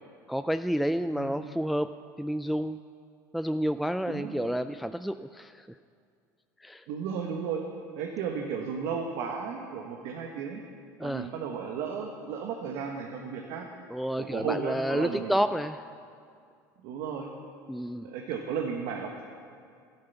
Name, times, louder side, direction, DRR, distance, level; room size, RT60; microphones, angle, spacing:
voice 1, 0.3-2.8 3.3-5.7 6.6-6.8 11.0-11.3 13.9-15.9 17.7-18.1, equal, ahead, 10 dB, 0.3 m, -30 dB
voice 2, 1.1-1.5 4.1-4.5 6.9-7.6 7.9-10.6 11.0-13.7 14.2-15.3 16.8-17.3 18.0-19.2, right 6 dB, 70° right, 2 dB, 1.4 m, -34 dB
12.0 x 11.5 x 7.0 m, 2.3 s
supercardioid pair, 90°, 9 cm